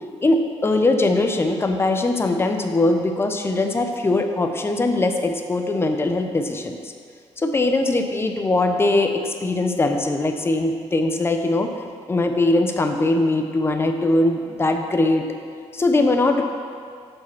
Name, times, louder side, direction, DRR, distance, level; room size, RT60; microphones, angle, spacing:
voice 1, 0.2-6.9 7.4-11.7 12.1-15.3 15.7-16.4, left 2 dB, 20° left, 5 dB, 0.6 m, -21 dB
7.5 x 4.9 x 5.7 m, 2.1 s
cardioid pair, 135°, 12 cm